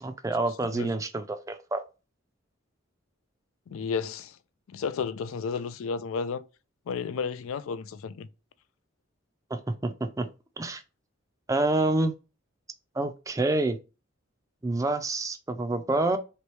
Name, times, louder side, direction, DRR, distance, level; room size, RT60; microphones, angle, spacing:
voice 1, 0.0-1.8 9.5-9.9 10.2-10.3 10.6-10.8 11.5-12.1 13.0-13.8 14.6-16.2, right 2 dB, 15° right, 0.4 m, -27 dB
voice 2, 3.7-4.3 4.7-6.4 6.9-8.3, left 5 dB, 80° left, 0.4 m, -32 dB
3.2 x 3.0 x 3.1 m
head